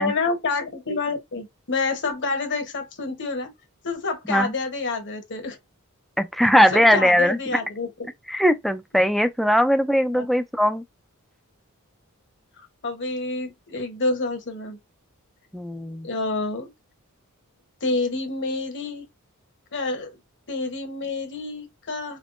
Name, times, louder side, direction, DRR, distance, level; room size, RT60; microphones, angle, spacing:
voice 1, 0.0-3.5 3.8-5.6 6.7-7.9 10.1-10.2 12.8-14.8 16.0-16.7 17.8-19.0 19.7-20.2 20.5-22.2, left 3 dB, 55° left, 1.1 m, -28 dB
voice 2, 6.2-7.4 8.3-10.8 15.5-16.1, equal, ahead, 0.4 m, -20 dB
3.5 x 2.9 x 2.6 m
head